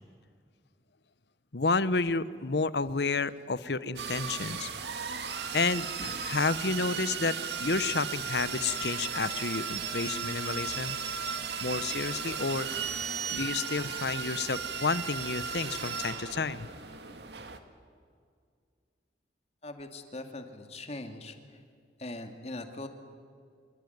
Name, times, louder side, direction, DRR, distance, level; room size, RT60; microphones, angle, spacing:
voice 1, 1.5-4.7 5.5-11.0 11.6-12.7 13.3-16.7, left 4 dB, 65° left, 16 dB, 1.0 m, -30 dB
sound 1, 4.0-17.6, right 6 dB, 70° right, 2.0 m, -35 dB
voice 2, 19.6-21.3 22.0-22.9, left 2 dB, 35° left, 6 dB, 2.5 m, -41 dB
26.0 x 23.0 x 9.5 m, 2.2 s
head